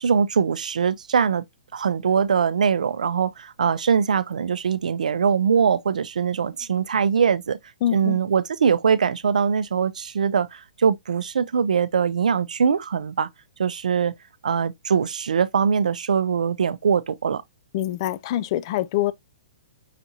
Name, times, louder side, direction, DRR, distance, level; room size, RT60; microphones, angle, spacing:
voice 1, 0.0-1.4 1.7-7.6 7.9-13.3 13.6-14.1 14.4-17.4, right 6 dB, 85° right, 0.5 m, -22 dB
voice 2, 7.8-8.2 17.7-19.1, left 13 dB, 40° left, 0.3 m, -25 dB
5.7 x 2.6 x 2.8 m
hypercardioid pair, 145°, 4 cm